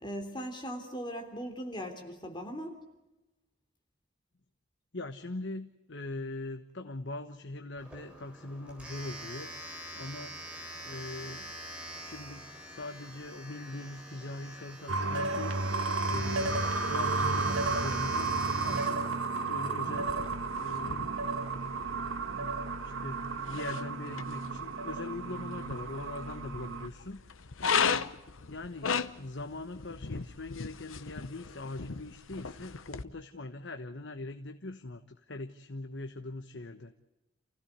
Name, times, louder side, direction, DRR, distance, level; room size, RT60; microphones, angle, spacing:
voice 1, 0.0-2.8, equal, 25° left, 4 dB, 3.3 m, -39 dB
voice 2, 4.9-9.5 10.0-10.4 10.8-11.6 12.0-18.3 18.6-19.1 19.4-20.2 20.6-21.1 22.7-28.0 28.5-36.9, left 2 dB, 65° left, 7 dB, 1.2 m, -42 dB
Domestic sounds home sounds, 7.8-20.2, right 1 dB, 5° right, 4.1 m, -44 dB
sound 1, 14.9-26.9, right 3 dB, 90° right, 1.7 m, -33 dB
sound 2, 19.9-33.0, left 6 dB, 85° left, 0.9 m, -37 dB
28.5 x 16.0 x 8.2 m, 1.0 s
head